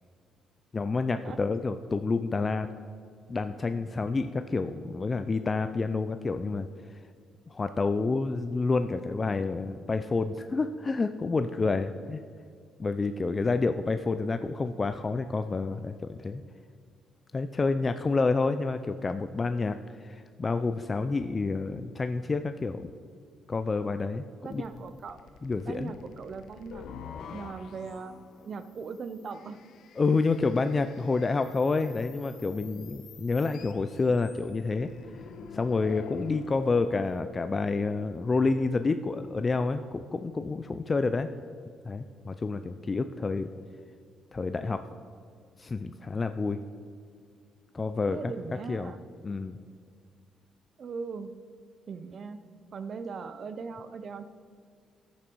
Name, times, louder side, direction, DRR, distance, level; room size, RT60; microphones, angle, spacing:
voice 1, 0.7-2.7 3.3-7.0 7.5-12.2 12.8-16.4 17.3-22.9 23.5-24.6 25.4-25.9 30.0-34.9 35.5-41.3 41.8-43.5 44.3-44.8 45.6-46.6 47.7-48.2 48.7-48.9 49.2-49.6, left 3 dB, 30° left, 9 dB, 0.4 m, -29 dB
voice 2, 24.4-25.2 25.6-26.9 27.3-29.6 48.1-49.0 50.8-51.3 51.9-52.4 52.7-54.3, right 5 dB, 50° right, 12 dB, 0.7 m, -39 dB
sound 1, 24.5-37.2, left 6 dB, 70° left, 0.7 m, -48 dB
13.5 x 7.3 x 4.6 m, 2.2 s
cardioid pair, 90°, 0 cm